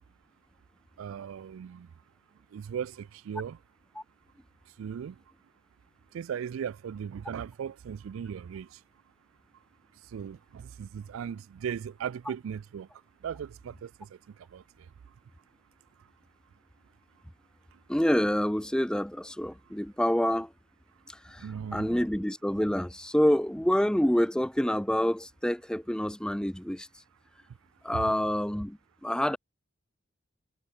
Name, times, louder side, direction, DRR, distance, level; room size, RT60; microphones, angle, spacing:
voice 1, 1.0-1.9 2.5-3.6 4.8-5.1 6.1-8.7 10.1-12.9 13.2-13.9 14.5-14.6 21.4-22.0 27.9-28.1, right 8 dB, 85° right, 0.3 m, -37 dB
voice 2, 17.9-20.5 21.1-26.9 27.8-29.4, equal, 5° left, 0.5 m, -27 dB
head